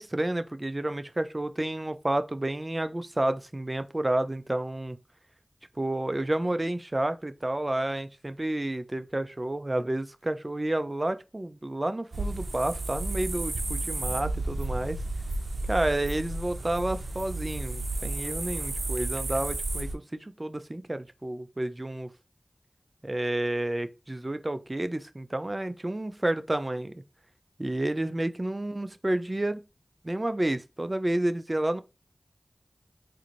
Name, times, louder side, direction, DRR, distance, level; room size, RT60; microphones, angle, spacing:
voice 1, 0.0-5.0 5.8-15.0 15.7-22.1 23.0-26.9 27.6-29.6 30.0-31.8, right 1 dB, 35° right, 0.4 m, -30 dB
sound 1, 12.1-20.0, right 2 dB, 80° right, 0.6 m, -32 dB
3.8 x 2.6 x 3.0 m
wide cardioid pair, 45°, 0 cm